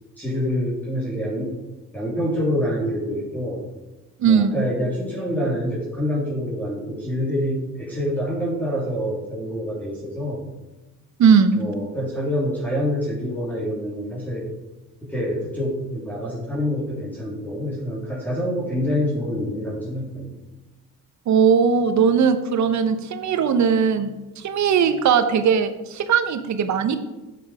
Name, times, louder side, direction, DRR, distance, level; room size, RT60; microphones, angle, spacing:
voice 1, 0.2-1.6 1.9-3.6 4.2-10.4 11.5-14.5 15.0-20.3, equal, 5° left, -6 dB, 3.4 m, -26 dB
voice 2, 4.2-4.7 11.2-11.6 21.3-27.0, right 6 dB, 70° right, 9 dB, 1.1 m, -19 dB
10.0 x 8.0 x 5.0 m, 1.1 s
cardioid pair, 90°, 30 cm